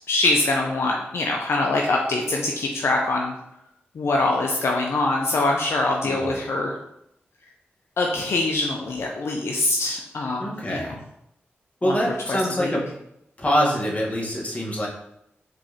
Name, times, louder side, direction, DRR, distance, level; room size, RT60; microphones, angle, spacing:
voice 1, 0.1-3.3 4.0-6.8 8.0-10.8 11.8-12.0 12.3-12.7, left 2 dB, 70° left, 0 dB, 0.5 m, -24 dB
voice 2, 6.0-6.5 10.4-11.0 11.8-12.9 13.4-14.9, equal, 35° left, -3 dB, 1.4 m, -25 dB
4.4 x 3.1 x 2.9 m, 0.80 s
cardioid pair, 40°, 4 cm